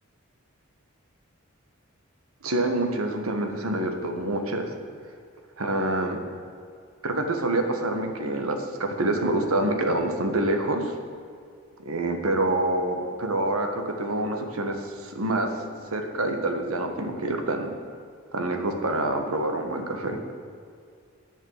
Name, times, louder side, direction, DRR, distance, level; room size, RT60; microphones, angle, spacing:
voice 1, 2.4-4.7 5.6-6.2 7.0-10.9 11.8-15.5 15.9-17.7 18.3-20.2, right 2 dB, 85° right, 5 dB, 1.5 m, -26 dB
9.9 x 8.0 x 8.1 m, 2.3 s
head